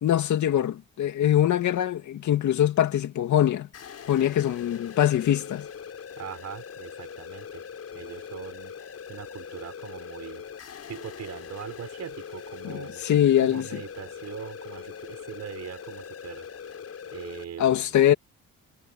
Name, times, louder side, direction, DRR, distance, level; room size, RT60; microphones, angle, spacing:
voice 1, 0.0-3.7 4.1-5.7 12.6-13.8 17.6-18.1, left 11 dB, 70° left, 2.5 m, -23 dB
sound 1, 3.7-17.4, left 7 dB, 55° left, 5.6 m, -41 dB
voice 2, 6.2-7.6 7.9-8.8 9.1-10.4 10.9-13.0 13.4-16.5 17.1-18.0, right 9 dB, 60° right, 6.6 m, -41 dB
cardioid pair, 90°, 30 cm